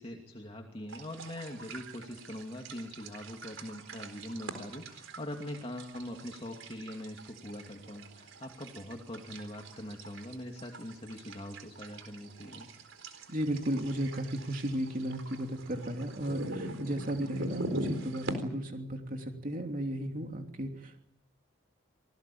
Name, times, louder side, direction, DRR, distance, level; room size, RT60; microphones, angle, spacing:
voice 1, 0.0-12.7, left 1 dB, 25° left, 1 dB, 2.6 m, -42 dB
sound 1, 0.9-18.3, right 1 dB, 70° right, 4.1 m, -43 dB
voice 2, 13.3-21.1, right 1 dB, 40° right, 4 dB, 2.9 m, -34 dB
27.0 x 19.0 x 8.7 m, 0.74 s
head